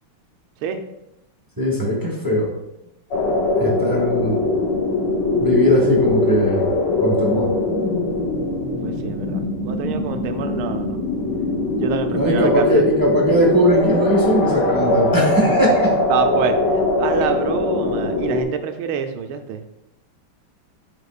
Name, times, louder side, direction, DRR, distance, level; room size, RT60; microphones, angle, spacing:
voice 1, 1.6-2.5 3.6-4.4 5.4-6.7 7.0-7.5 12.1-15.9, equal, 10° right, -3 dB, 1.2 m, -19 dB
sound 1, 3.1-18.4, left 2 dB, 60° left, 1.5 m, -21 dB
voice 2, 8.8-11.0 11.8-12.9 15.4-15.7 16.1-16.6 17.0-19.6, right 7 dB, 85° right, 7 dB, 1.5 m, -26 dB
12.0 x 4.3 x 2.4 m, 0.90 s
omnidirectional pair, 2.3 m